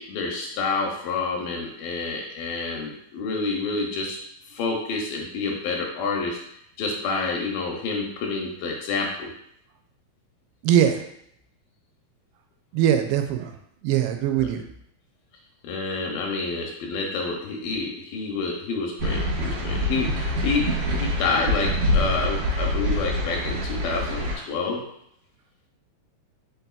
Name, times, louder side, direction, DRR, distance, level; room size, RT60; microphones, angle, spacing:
voice 1, 0.0-4.2 4.5-6.4 6.8-9.3 14.3-14.5 15.6-20.6 20.9-24.9, left 4 dB, 80° left, 0 dB, 2.2 m, -28 dB
voice 2, 10.6-11.0 12.7-13.5 13.8-14.6, right 10 dB, 85° right, 6 dB, 2.4 m, -21 dB
sound 1, 19.0-24.4, equal, 65° right, 1.8 m, -25 dB
5.5 x 4.0 x 2.3 m, 0.73 s
omnidirectional pair, 4.3 m